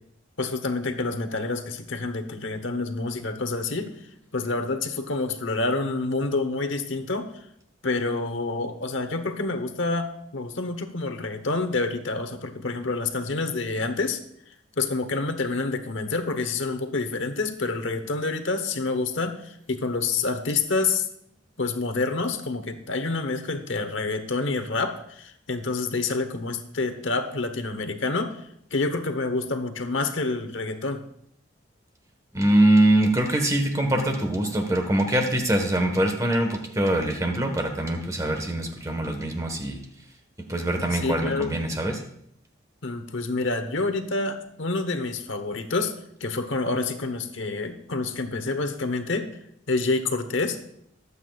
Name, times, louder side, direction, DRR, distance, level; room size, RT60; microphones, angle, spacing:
voice 1, 0.4-3.9 4.3-7.3 7.8-14.2 14.8-21.1 21.6-28.3 28.7-31.0 40.9-41.5 42.8-45.9 46.2-49.3 49.7-50.6, left 3 dB, 65° left, 8 dB, 1.1 m, -28 dB
voice 2, 32.3-39.8 40.5-42.0, right 1 dB, 15° right, 4 dB, 1.4 m, -23 dB
22.0 x 8.2 x 2.5 m, 0.71 s
head